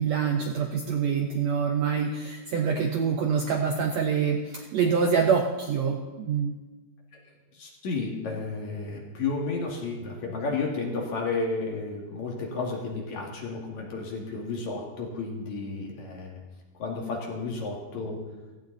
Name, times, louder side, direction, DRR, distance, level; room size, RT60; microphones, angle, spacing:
voice 1, 0.0-6.5, right 6 dB, 70° right, 3 dB, 1.6 m, -26 dB
voice 2, 7.5-16.4 16.8-18.2, left 3 dB, 55° left, 0 dB, 3.2 m, -32 dB
16.5 x 15.0 x 4.0 m, 1.2 s
omnidirectional pair, 4.2 m